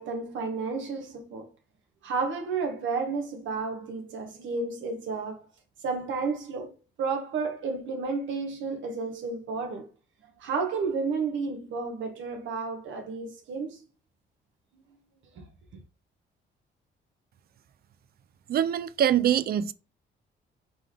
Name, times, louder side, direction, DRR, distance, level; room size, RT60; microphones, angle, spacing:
voice 1, 0.0-1.5 2.0-5.4 5.8-9.9 10.4-13.8 15.3-15.5, right 4 dB, 75° right, 1.0 m, -32 dB
voice 2, 18.5-19.7, right 10 dB, 50° right, 0.4 m, -24 dB
3.9 x 3.3 x 3.5 m
cardioid pair, 90°, 20 cm